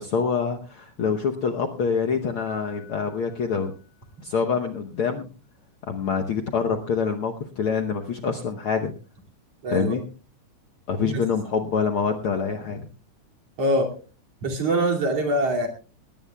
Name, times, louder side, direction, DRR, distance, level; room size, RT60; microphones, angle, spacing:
voice 1, 0.0-3.7 4.2-5.3 5.9-8.9 9.7-10.0 10.9-12.9, left 6 dB, 65° left, 4 dB, 1.4 m, -26 dB
Piano, 2.5-4.6, left 4 dB, 20° right, 7.5 m, -52 dB
voice 2, 9.6-9.9 11.0-11.2 13.6-13.9 14.4-15.7, right 1 dB, 55° right, 2 dB, 3.6 m, -23 dB
19.5 x 18.0 x 2.3 m, 0.36 s
omnidirectional pair, 3.4 m